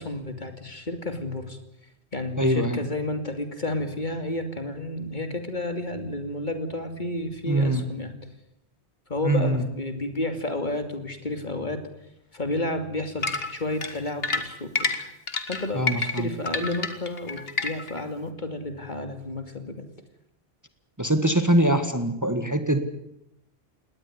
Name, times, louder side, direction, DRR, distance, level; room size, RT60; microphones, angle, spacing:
voice 1, 0.0-1.6 2.1-8.1 9.1-11.8 12.3-14.9 15.5-19.9, left 2 dB, 45° left, 7 dB, 2.7 m, -31 dB
voice 2, 2.4-2.8 7.5-7.8 9.2-9.6 15.7-16.3 21.0-22.8, right 1 dB, 15° right, 8 dB, 1.7 m, -23 dB
sound 1, 13.2-18.0, left 3 dB, 60° left, 2.0 m, -29 dB
20.0 x 18.5 x 9.8 m, 0.81 s
omnidirectional pair, 1.1 m